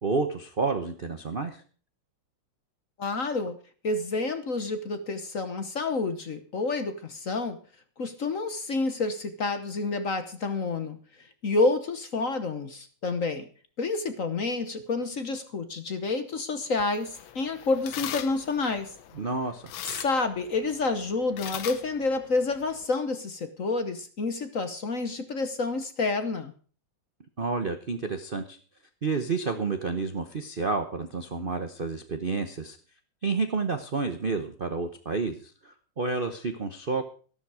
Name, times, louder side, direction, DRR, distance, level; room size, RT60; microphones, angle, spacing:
voice 1, 0.0-1.6 19.2-19.6 27.4-28.6 29.0-32.8 33.2-37.0, right 4 dB, 45° right, 7 dB, 0.7 m, -30 dB
voice 2, 3.0-3.6 3.8-7.6 8.0-13.5 13.8-18.9 19.9-26.5, left 3 dB, 45° left, 9 dB, 1.3 m, -29 dB
sound 1, 16.8-22.9, left 11 dB, 75° left, 1.6 m, -41 dB
13.5 x 12.5 x 4.8 m, 0.41 s
omnidirectional pair, 2.3 m